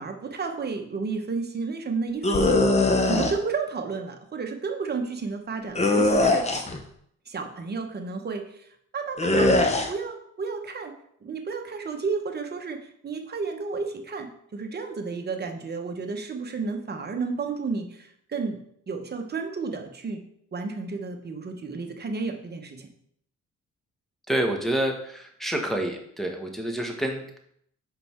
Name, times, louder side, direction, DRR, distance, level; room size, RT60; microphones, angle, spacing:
voice 1, 0.0-2.7 3.1-6.5 7.3-10.9 11.2-18.6 18.9-20.2 20.5-22.9, right 4 dB, 35° right, 4 dB, 1.0 m, -32 dB
sound 1, 2.2-3.3 5.7-6.8 9.2-9.9, left 2 dB, 20° left, 0.9 m, -21 dB
voice 2, 24.3-27.4, right 1 dB, ahead, 3 dB, 1.2 m, -28 dB
5.2 x 4.7 x 4.4 m, 0.69 s
cardioid pair, 90°, 30 cm